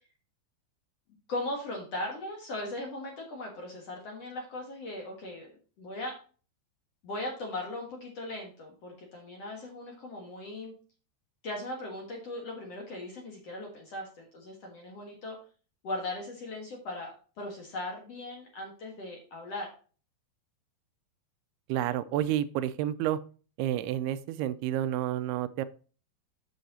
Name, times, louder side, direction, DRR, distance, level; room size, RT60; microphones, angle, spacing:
voice 1, 1.3-5.5 5.8-6.1 7.0-10.7 11.4-15.4 15.8-19.7, left 1 dB, 55° left, 1 dB, 2.0 m, -38 dB
voice 2, 21.7-23.2 23.6-25.7, right 12 dB, 85° right, 13 dB, 2.4 m, -30 dB
7.9 x 7.1 x 4.1 m, 0.38 s
omnidirectional pair, 4.6 m